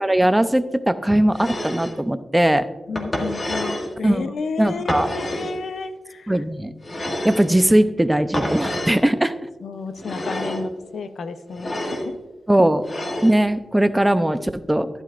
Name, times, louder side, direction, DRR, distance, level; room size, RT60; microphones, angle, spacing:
voice 1, 0.0-2.6 4.0-5.1 6.3-6.7 7.2-9.3 12.5-12.8 13.2-14.9, right 1 dB, 10° right, 11 dB, 0.6 m, -19 dB
sound 1, 1.3-2.0 3.0-3.9 4.9-5.6 6.8-7.5 8.3-9.0 10.0-10.7 11.5-12.1 12.8-13.4, left 1 dB, 40° left, 1.8 m, -28 dB
voice 2, 2.9-5.9 9.6-11.7 12.0-12.1, left 4 dB, 75° left, 9 dB, 0.7 m, -31 dB
12.0 x 11.0 x 2.5 m, 1.1 s
cardioid pair, 75°, 0 cm